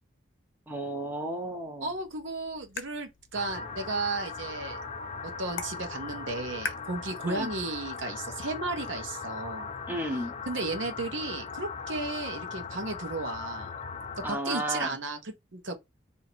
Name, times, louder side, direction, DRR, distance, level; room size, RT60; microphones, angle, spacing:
voice 1, 0.7-1.9 7.3-7.5 9.9-10.3 14.2-15.0, right 1 dB, 10° right, 0.7 m, -33 dB
voice 2, 1.8-4.8 5.2-9.7 10.5-13.7 14.3-15.7, right 3 dB, 70° right, 1.0 m, -34 dB
sound 1, 1.9-7.9, left 5 dB, 70° left, 0.7 m, -44 dB
sound 2, 3.3-14.3, left 5 dB, 35° left, 0.5 m, -39 dB
2.8 x 2.8 x 4.4 m
head